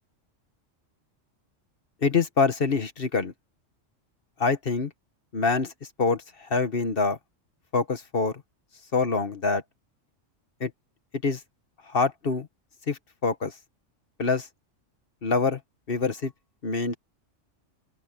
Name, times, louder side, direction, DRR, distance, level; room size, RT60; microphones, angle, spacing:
voice 1, 2.0-3.3 4.4-4.9 5.3-5.7 6.0-7.2 7.7-8.4 8.9-9.6 10.6-10.7 11.2-11.4 11.9-12.5 12.9-13.5 14.2-14.5 15.2-15.6 15.9-16.3 16.6-17.0, left 4 dB, 50° left, 1.5 m, -25 dB
open air
omnidirectional pair, 1.3 m